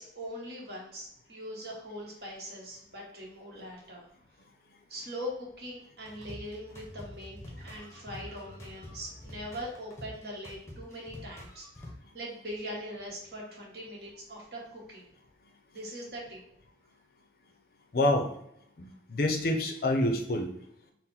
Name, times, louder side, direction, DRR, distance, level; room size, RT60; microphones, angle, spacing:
voice 1, 0.0-4.0 4.9-15.1 15.7-16.4, equal, 60° right, -2 dB, 1.2 m, -41 dB
sound 1, 6.0-11.9, left 1 dB, 15° left, 0.7 m, -46 dB
voice 2, 17.9-18.3 18.8-20.5, left 1 dB, 55° left, 4 dB, 0.5 m, -27 dB
3.9 x 2.1 x 4.2 m, 0.74 s
head